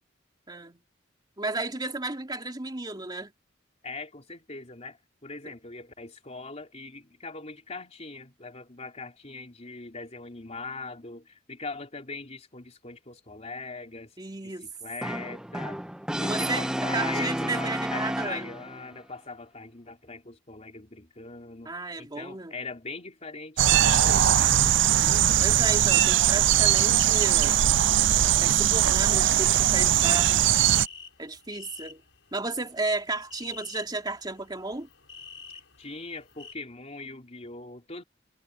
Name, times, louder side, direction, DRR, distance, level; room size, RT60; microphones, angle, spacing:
voice 1, 0.5-0.8 1.4-3.3 14.2-14.7 16.3-18.4 21.6-22.5 25.4-27.6 28.4-30.5 31.2-32.0 32.3-34.9, right 2 dB, 20° right, 2.8 m, -33 dB
voice 2, 3.8-14.1 14.4-15.8 16.2-24.6 35.8-38.0, left 3 dB, 35° left, 3.6 m, -41 dB
Brass instrument, 15.0-18.8, equal, 5° right, 0.9 m, -31 dB
sound 1, 23.6-30.9, right 11 dB, 65° right, 0.5 m, -21 dB
sound 2, 30.2-36.6, left 4 dB, 70° left, 6.4 m, -48 dB
head